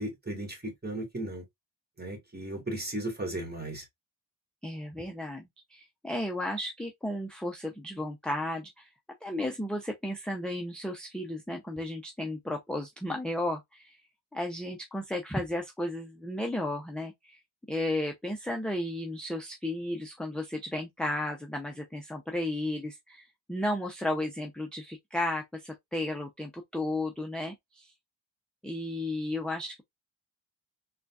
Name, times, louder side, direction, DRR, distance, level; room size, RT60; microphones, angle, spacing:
voice 1, 0.0-1.5 2.0-3.8, right 1 dB, 20° right, 1.7 m, -36 dB
voice 2, 4.6-5.4 5.7-8.9 9.2-14.0 14.3-17.4 17.7-27.9 28.6-29.8, left 1 dB, ahead, 0.5 m, -34 dB
3.8 x 2.4 x 2.3 m
cardioid pair, 70°, 49 cm